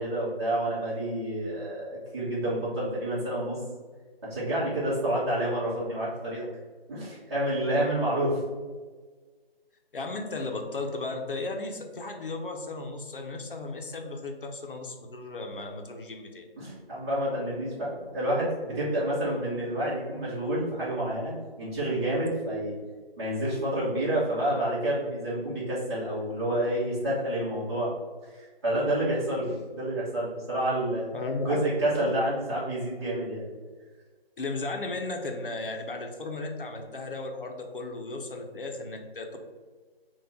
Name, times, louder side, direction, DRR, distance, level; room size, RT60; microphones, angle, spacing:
voice 1, 0.0-3.6 4.2-6.4 6.9-8.4 16.6-21.3 21.6-22.7 23.2-27.9 28.2-31.1 31.4-33.5, right 1 dB, 25° right, -11 dB, 1.4 m, -29 dB
voice 2, 9.9-16.4 31.1-31.6 34.4-39.4, left 3 dB, 60° left, 3 dB, 0.8 m, -35 dB
4.1 x 2.5 x 4.1 m, 1.4 s
figure-of-eight pair, 160°, 30 cm